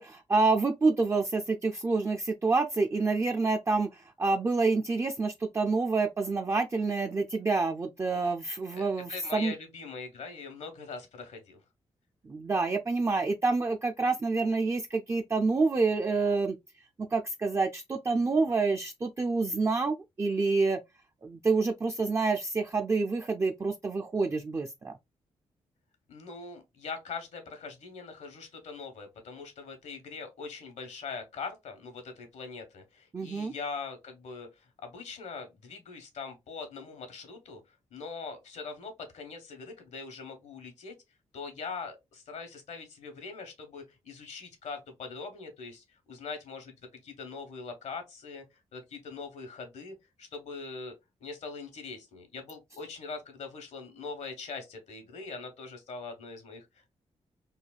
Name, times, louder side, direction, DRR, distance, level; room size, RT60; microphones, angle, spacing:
voice 1, 0.0-9.5 12.2-16.6 17.1-20.8 21.2-24.9 33.1-33.5, right 3 dB, 25° right, 0.3 m, -28 dB
voice 2, 9.1-11.6 26.1-37.6 37.9-40.9 41.3-46.7 47.0-48.4 48.7-50.9 51.2-56.9, left 4 dB, 75° left, 1.1 m, -42 dB
3.2 x 2.2 x 2.3 m
cardioid pair, 65°, 12 cm